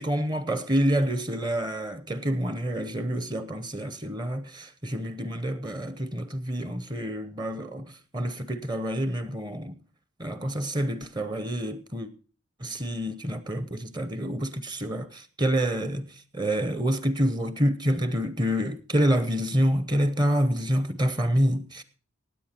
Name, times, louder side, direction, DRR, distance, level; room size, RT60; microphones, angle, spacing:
voice 1, 0.0-9.7 10.2-12.1 12.6-16.1 16.3-21.8, equal, 20° right, 0.8 m, -27 dB
17.0 x 8.5 x 4.4 m
head